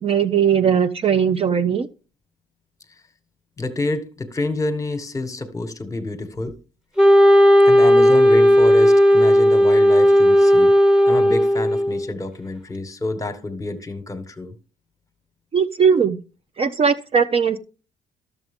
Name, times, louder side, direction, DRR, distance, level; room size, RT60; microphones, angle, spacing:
voice 1, 0.0-1.9 15.5-16.2 16.6-17.6, right 7 dB, 35° right, 0.6 m, -19 dB
voice 2, 3.6-6.6 7.6-10.7 11.1-14.5, left 2 dB, 20° left, 1.3 m, -28 dB
Wind instrument woodwind instrument, 7.0-12.1, equal, 5° right, 1.3 m, -14 dB
12.0 x 7.0 x 3.6 m
cardioid pair, 110°, 17 cm